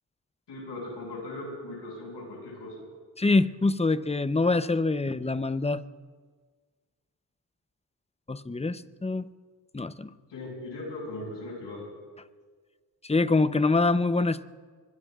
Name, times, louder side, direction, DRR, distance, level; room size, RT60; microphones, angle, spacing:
voice 1, 0.5-2.8 10.3-11.8, left 2 dB, 90° left, -2 dB, 6.1 m, -38 dB
voice 2, 3.2-5.8 8.3-9.3 9.7-10.1 13.0-14.4, left 3 dB, 15° left, 13 dB, 0.7 m, -25 dB
25.0 x 21.5 x 2.5 m, 1.5 s
supercardioid pair, 40°, 41 cm